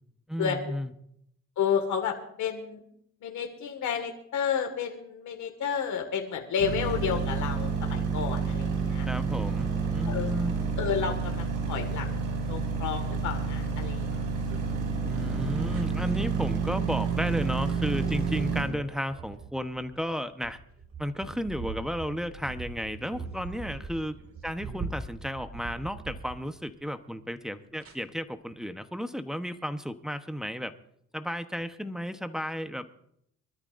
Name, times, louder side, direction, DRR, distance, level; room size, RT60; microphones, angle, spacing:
voice 1, 0.3-0.9 9.0-10.5 15.0-20.6 21.0-24.2 24.4-30.7 31.1-32.9, equal, ahead, 8 dB, 1.0 m, -33 dB
voice 2, 1.6-2.8 3.2-9.1 10.1-10.3 10.8-12.1 12.5-14.1, left 7 dB, 75° left, 4 dB, 1.9 m, -31 dB
sound 1, 6.6-18.6, right 5 dB, 85° right, 6.6 m, -29 dB
sound 2, 14.1-14.8 15.7-16.2 17.4-17.7 18.0-26.8 27.8-27.9, right 4 dB, 45° right, 2.2 m, -42 dB
24.0 x 13.0 x 2.6 m, 0.71 s
cardioid pair, 90°, 30 cm